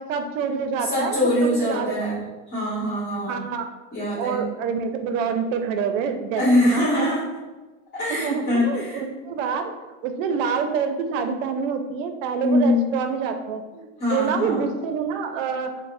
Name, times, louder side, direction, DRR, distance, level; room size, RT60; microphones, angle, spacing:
voice 1, 0.0-2.2 3.3-3.7 4.2-7.1 8.1-9.7 10.0-15.7, right 6 dB, 75° right, 7 dB, 0.5 m, -27 dB
voice 2, 0.8-3.4 3.9-4.4 6.4-7.3 7.9-9.0 12.4-12.9 14.0-14.7, left 1 dB, 25° left, -9 dB, 1.3 m, -23 dB
3.2 x 2.1 x 2.5 m, 1.2 s
supercardioid pair, 125°, 39 cm